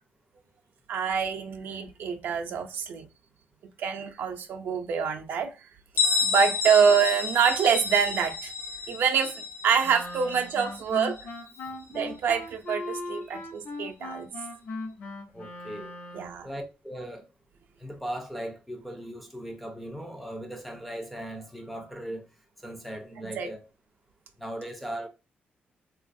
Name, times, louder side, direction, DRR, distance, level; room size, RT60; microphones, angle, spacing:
voice 1, 0.9-3.1 3.8-5.5 6.2-8.5 8.9-11.3 11.9-14.3 16.1-16.5 23.4-23.5, right 7 dB, 60° right, 0.5 m, -26 dB
Bell, 6.0-11.5, left 5 dB, 85° left, 0.5 m, -30 dB
Wind instrument woodwind instrument, 9.8-16.5, left 2 dB, 55° left, 0.7 m, -39 dB
voice 2, 15.3-15.9 16.4-17.3 17.8-22.3 22.6-23.7 24.4-25.1, right 1 dB, ahead, 0.4 m, -38 dB
3.4 x 2.3 x 2.5 m
wide cardioid pair, 180°, 4 cm